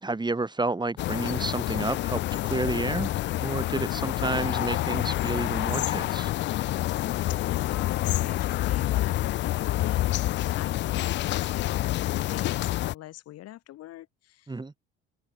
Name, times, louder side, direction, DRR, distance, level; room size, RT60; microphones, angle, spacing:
voice 1, 0.0-3.1 3.4-6.3 14.5-14.7, right 3 dB, 15° right, 2.1 m, -30 dB
sound 1, 1.0-12.9, left 15 dB, 40° left, 0.4 m, -28 dB
voice 2, 6.4-14.5, left 14 dB, 55° left, 4.1 m, -43 dB
open air
hypercardioid pair, 65°, 29 cm